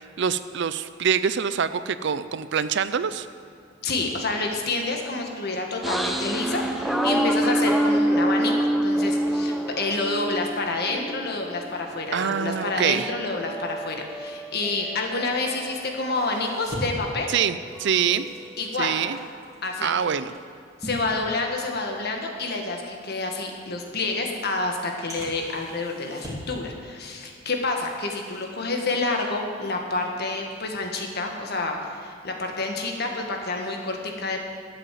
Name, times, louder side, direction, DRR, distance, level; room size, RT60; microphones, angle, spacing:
voice 1, 0.2-3.3 12.1-13.1 17.3-18.3 18.8-19.2 19.8-20.3, right 7 dB, 65° right, 13 dB, 0.5 m, -25 dB
voice 2, 3.8-17.3 18.6-18.9 19.6-19.9 20.8-34.4, left 3 dB, 55° left, 2 dB, 1.7 m, -28 dB
sound 1, 5.8-11.8 12.2-16.4 16.7-19.3, right 1 dB, ahead, 0.6 m, -27 dB
sound 2, 16.1-21.9 22.3-22.5 23.1-23.2 24.1-24.2 25.1-26.6 26.9-27.4 27.7-29.9 30.3-30.5, equal, 20° right, 2.5 m, -41 dB
12.5 x 8.0 x 7.5 m, 2.4 s
head